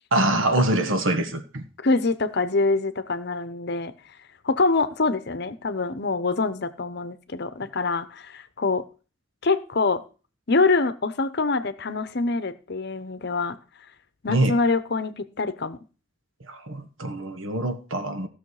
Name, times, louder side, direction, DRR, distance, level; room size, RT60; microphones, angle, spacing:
voice 1, 0.1-1.6 14.3-14.6 16.4-18.3, right 1 dB, 75° right, 1.5 m, -24 dB
voice 2, 1.8-3.9 4.4-8.9 9.4-10.0 10.5-13.6 14.2-15.8, left 3 dB, 55° left, 0.9 m, -25 dB
15.5 x 6.5 x 4.8 m
head